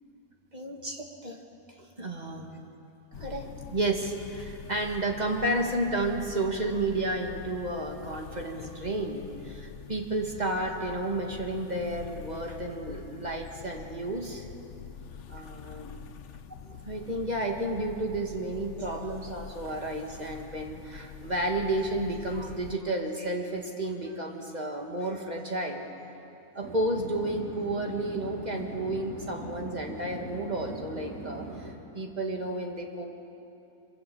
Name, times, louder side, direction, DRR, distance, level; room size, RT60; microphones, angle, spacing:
voice 1, 0.5-1.4 2.0-2.6 3.2-14.5 15.3-16.0 16.6-25.9 26.5-33.1, right 1 dB, 30° right, 1 dB, 2.3 m, -32 dB
sound 1, 3.1-22.8, left 7 dB, 55° left, 1.0 m, -45 dB
sound 2, 26.6-31.8, right 2 dB, 65° right, 3.0 m, -41 dB
25.5 x 24.0 x 7.3 m, 2.8 s
omnidirectional pair, 1.6 m